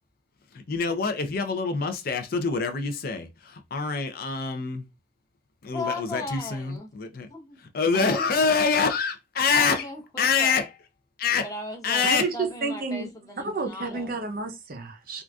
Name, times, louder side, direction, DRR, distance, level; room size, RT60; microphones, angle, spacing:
voice 1, 0.7-4.8 5.6-7.3 7.6-9.8 10.2-10.7 11.2-11.5 11.8-12.3, left 5 dB, 50° left, 0.4 m, -25 dB
voice 2, 5.7-6.9 7.3-7.6 7.9-8.3 9.5-10.7 11.3-12.1 12.3-14.2, left 2 dB, 20° left, 0.8 m, -36 dB
voice 3, 12.0-13.1 13.4-15.2, right 4 dB, 50° right, 0.6 m, -30 dB
3.7 x 2.4 x 2.3 m
head